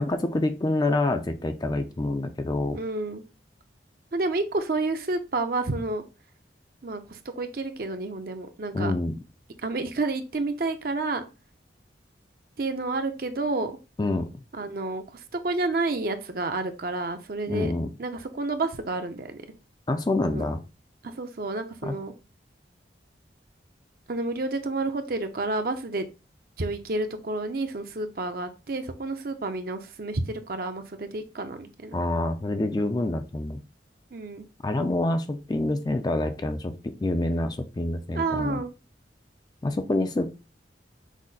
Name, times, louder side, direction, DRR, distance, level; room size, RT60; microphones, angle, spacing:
voice 1, 0.0-2.8 8.7-9.1 14.0-14.4 17.5-17.9 19.9-20.6 21.8-22.0 31.9-33.6 34.6-38.6 39.6-40.3, left 2 dB, 20° left, 8 dB, 0.4 m, -27 dB
voice 2, 2.7-3.2 4.1-6.0 6.8-8.9 9.6-11.2 12.6-13.8 14.5-17.7 18.0-19.4 20.2-20.4 21.2-22.1 24.1-26.1 26.6-32.0 34.1-34.5 38.1-38.7, right 2 dB, 50° right, 7 dB, 0.6 m, -30 dB
6.2 x 2.1 x 3.9 m, 0.29 s
head